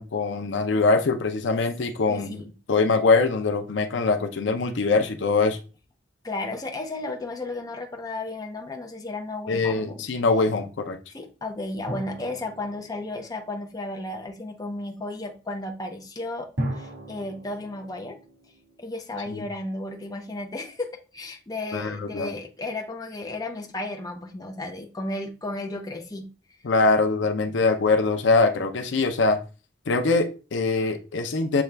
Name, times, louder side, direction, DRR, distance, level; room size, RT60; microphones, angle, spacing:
voice 1, 0.0-2.4 2.7-5.6 9.5-11.0 19.3-19.4 21.7-22.3 26.6-29.4 29.9-31.6, left 3 dB, 75° left, 6 dB, 0.6 m, -23 dB
voice 2, 2.1-2.5 6.2-10.1 11.1-18.2 18.8-20.9 21.1-26.3, left 2 dB, 20° left, 3 dB, 0.6 m, -34 dB
sound 1, 11.9-14.2 16.6-19.5, right 1 dB, 85° right, 1.7 m, -37 dB
7.0 x 2.3 x 3.3 m, 0.34 s
head